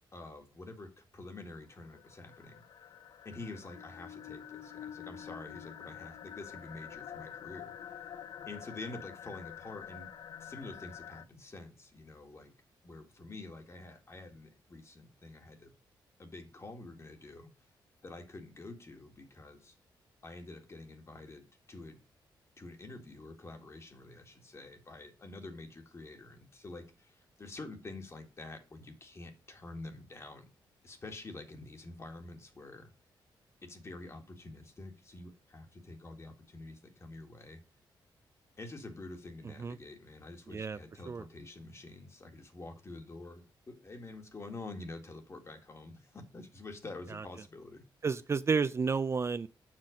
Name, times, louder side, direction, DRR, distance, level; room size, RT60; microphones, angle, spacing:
voice 1, 0.1-2.6 3.2-7.7 8.5-10.1 10.4-12.5 12.8-15.7 16.2-17.5 18.0-19.7 20.2-22.0 22.6-30.5 30.8-32.9 33.6-37.6 38.6-47.8, left 2 dB, 35° left, 1.8 m, -47 dB
sound 1, 1.6-11.3, left 9 dB, 65° left, 0.7 m, -47 dB
voice 2, 48.0-49.5, right 5 dB, 35° right, 0.4 m, -31 dB
7.6 x 6.0 x 5.0 m
cardioid pair, 105°, 8 cm